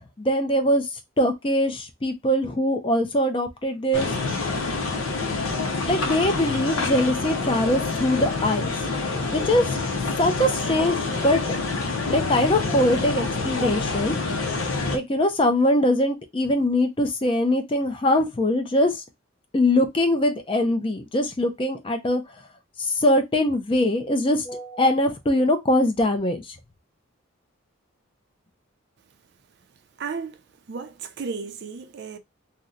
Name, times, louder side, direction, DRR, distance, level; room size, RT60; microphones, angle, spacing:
voice 1, 0.2-0.9 1.2-4.1 5.9-8.7 9.3-9.8 10.2-11.4 12.1-14.1 14.9-19.0 19.5-22.2 22.8-26.6, left 1 dB, 25° left, 0.4 m, -22 dB
sound 1, 3.9-15.0, left 3 dB, 75° left, 0.6 m, -27 dB
voice 2, 30.0-30.4 30.7-32.2, right 5 dB, 50° right, 0.4 m, -34 dB
2.8 x 2.1 x 3.6 m
head